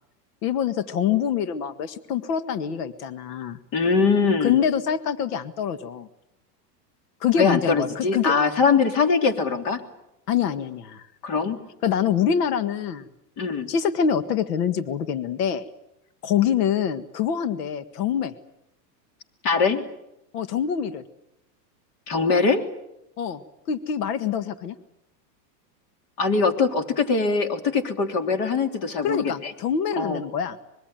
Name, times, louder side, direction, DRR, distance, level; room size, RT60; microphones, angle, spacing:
voice 1, 0.4-3.6 4.4-6.1 7.2-8.3 10.3-11.1 11.8-13.1 13.7-15.6 16.2-18.3 20.3-21.0 23.2-23.4 23.7-24.8 29.0-30.6, left 8 dB, 70° left, 12 dB, 1.9 m, -25 dB
voice 2, 3.7-4.6 7.4-9.8 11.2-11.6 13.4-13.7 19.4-19.8 22.1-22.6 26.2-29.5 30.0-30.2, left 4 dB, 40° left, 8 dB, 3.4 m, -22 dB
25.5 x 22.0 x 9.1 m, 0.86 s
supercardioid pair, 140°, 49 cm